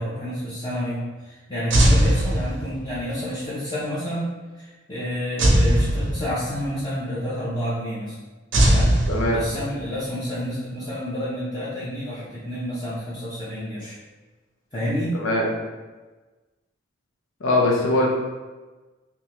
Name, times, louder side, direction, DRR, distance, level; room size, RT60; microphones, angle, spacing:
voice 1, 0.0-4.3 4.6-8.2 8.7-9.0 9.3-14.0 14.7-15.2, equal, 20° left, -11 dB, 0.6 m, -29 dB
sound 1, 1.7-3.0 5.4-6.7 8.5-9.8, right 1 dB, 65° right, 0.7 m, -19 dB
voice 2, 9.1-9.4 15.2-15.5 17.4-18.1, left 1 dB, 85° left, -2 dB, 0.8 m, -21 dB
3.6 x 2.7 x 3.0 m, 1.2 s
head